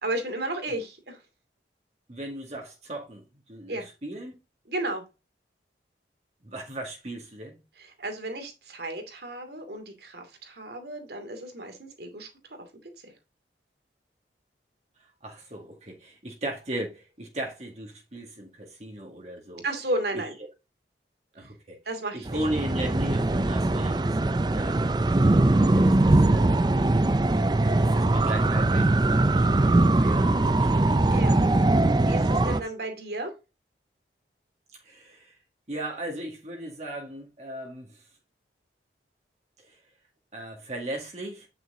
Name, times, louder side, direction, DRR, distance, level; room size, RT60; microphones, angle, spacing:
voice 1, 0.0-1.2 3.7-3.9 4.7-5.0 7.8-12.3 12.6-12.7 13.0-13.1 19.6-20.3 21.4-21.5 21.9-22.4 31.1-31.3 32.0-33.3, right 1 dB, 65° right, 2.5 m, -33 dB
voice 2, 2.1-4.4 6.4-7.6 15.0-19.6 20.1-20.2 21.3-21.8 22.1-24.9 25.5-26.6 27.6-31.1 32.1-32.6 34.8-35.4 35.7-38.1 39.6-39.8 40.3-41.5, right 1 dB, 40° right, 2.0 m, -37 dB
sound 1, 22.3-32.6, right 2 dB, 25° right, 0.4 m, -21 dB
9.4 x 6.1 x 3.8 m
head